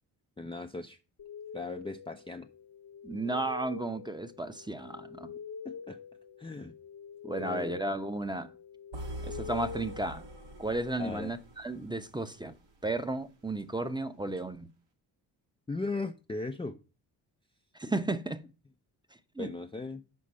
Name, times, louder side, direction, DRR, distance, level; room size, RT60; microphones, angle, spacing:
voice 1, 0.4-1.0 1.5-2.5 5.6-6.0 6.4-6.7 7.4-7.8 11.0-11.3 15.7-16.8 19.4-20.0, left 3 dB, 10° left, 0.6 m, -37 dB
sound 1, 1.2-10.9, left 6 dB, 50° left, 0.9 m, -45 dB
voice 2, 3.0-5.3 7.2-8.5 9.2-10.2 10.6-12.5 12.8-14.7 17.7-18.4 19.4-19.5, right 2 dB, 10° right, 0.9 m, -34 dB
sound 2, 8.9-13.0, right 1 dB, 75° right, 2.0 m, -45 dB
6.5 x 5.1 x 5.6 m
supercardioid pair, 60°, 43 cm